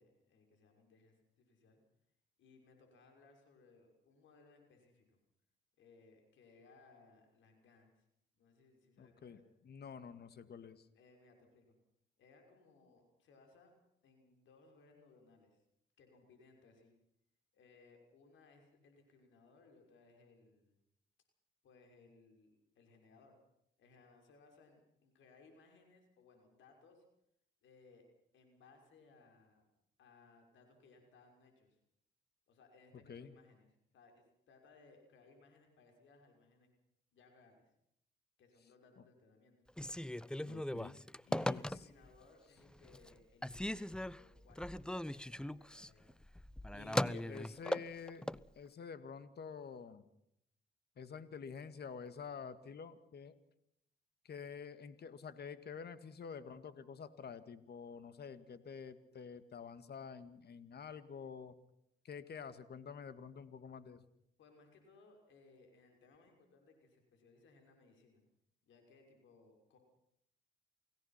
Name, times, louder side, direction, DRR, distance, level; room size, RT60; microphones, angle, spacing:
voice 1, 0.0-1.8 2.4-5.2 5.8-8.1 8.3-9.4 10.9-11.8 12.2-13.7 14.0-15.6 16.0-16.9 17.5-20.8 21.6-23.4 23.8-27.1 27.6-28.1 28.3-29.6 30.0-31.8 32.5-33.7 33.9-36.7 37.1-37.6 38.4-39.6 41.3-46.1 64.4-68.2 68.6-69.8, left 3 dB, 80° left, 4 dB, 6.1 m, -65 dB
voice 2, 9.0-10.9 33.1-33.3 39.0-39.1 40.4-41.9 46.7-48.3 48.6-50.1 51.0-53.4 54.2-61.6 62.0-64.0, left 6 dB, 55° left, 12 dB, 2.1 m, -49 dB
Telephone, 39.7-42.2 42.6-43.1 43.4-48.4, left 1 dB, 5° left, 0.7 m, -39 dB
29.0 x 18.0 x 5.9 m, 0.75 s
supercardioid pair, 65°, 20 cm